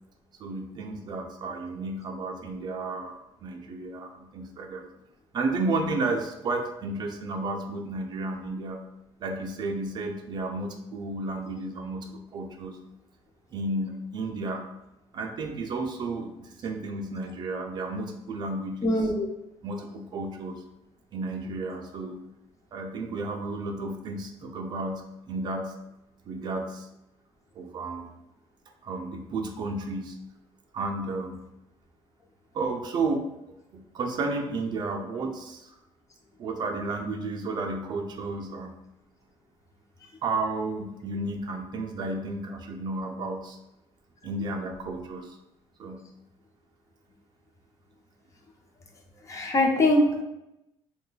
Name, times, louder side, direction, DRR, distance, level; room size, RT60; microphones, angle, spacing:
voice 1, 0.4-3.1 3.4-4.8 5.3-8.8 9.2-12.8 13.5-14.7 15.1-19.0 19.6-20.6 21.1-22.2 22.7-25.7 26.3-26.9 27.6-28.1 28.8-30.2 30.7-31.4 32.5-33.3 33.7-35.8 36.4-38.7 40.2-43.6 44.2-45.4 45.8-46.1, right 2 dB, 45° right, 3 dB, 0.4 m, -32 dB
voice 2, 18.8-19.3 49.3-50.2, left 1 dB, 30° left, 2 dB, 0.5 m, -22 dB
3.0 x 2.2 x 3.8 m, 0.89 s
cardioid pair, 145°, 10 cm